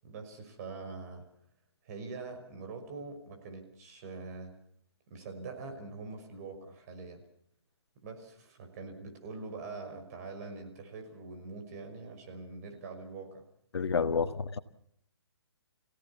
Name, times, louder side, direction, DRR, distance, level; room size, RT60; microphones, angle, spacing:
voice 1, 0.0-1.2 1.8-4.5 5.1-7.2 8.0-13.4, right 3 dB, 35° right, 3 dB, 5.7 m, -44 dB
voice 2, 13.7-14.6, left 5 dB, 70° left, 10 dB, 1.6 m, -29 dB
27.5 x 17.0 x 7.1 m, 0.68 s
hypercardioid pair, 150°, 14 cm